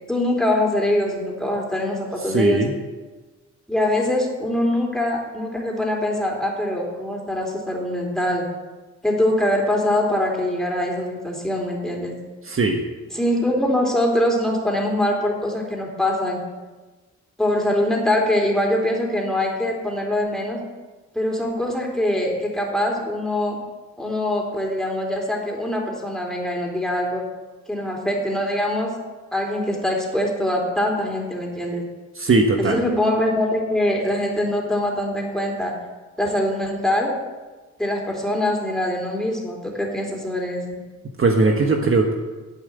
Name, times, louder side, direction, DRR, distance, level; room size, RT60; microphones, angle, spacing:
voice 1, 0.1-2.6 3.7-8.5 9.0-12.1 13.1-16.4 17.4-20.6 21.1-23.6 24.0-27.2 27.7-28.9 29.3-31.8 32.6-35.7 36.2-37.2 37.8-40.7, left 1 dB, ahead, 0 dB, 3.8 m, -23 dB
voice 2, 2.2-2.7 12.4-12.8 32.1-32.8 41.2-42.1, right 3 dB, 45° right, 3 dB, 1.4 m, -19 dB
11.5 x 8.9 x 8.1 m, 1.3 s
cardioid pair, 90°, 29 cm